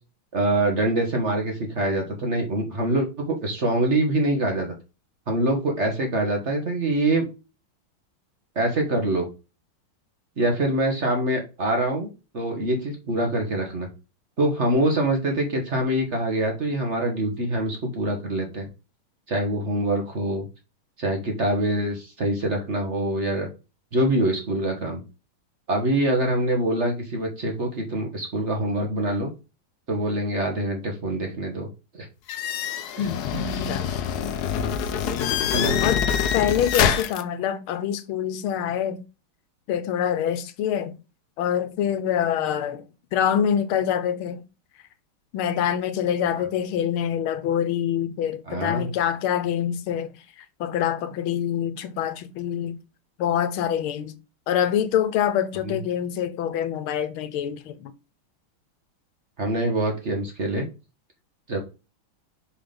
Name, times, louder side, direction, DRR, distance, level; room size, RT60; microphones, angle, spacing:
voice 1, 0.3-4.7 5.3-7.3 8.5-9.3 10.4-12.1 12.3-13.9 14.4-18.7 19.3-20.4 21.0-23.5 23.9-25.0 25.7-29.3 29.9-31.7 31.9-32.1 33.0-33.1 33.3-33.4 35.5-35.8 48.5-48.9 55.6-55.8 59.4-60.6 61.5-61.6, right 1 dB, 40° right, 1.4 m, -24 dB
sound 1, 32.3-37.2, left 8 dB, 65° left, 1.0 m, -25 dB
voice 2, 33.0-34.4 35.0-35.4 35.8-36.0 36.3-39.0 39.7-40.9 41.4-42.8 43.1-44.4 45.3-50.1 50.6-52.8 53.2-54.1 54.5-57.9, left 9 dB, 90° left, 1.6 m, -25 dB
5.4 x 3.8 x 5.1 m
omnidirectional pair, 2.3 m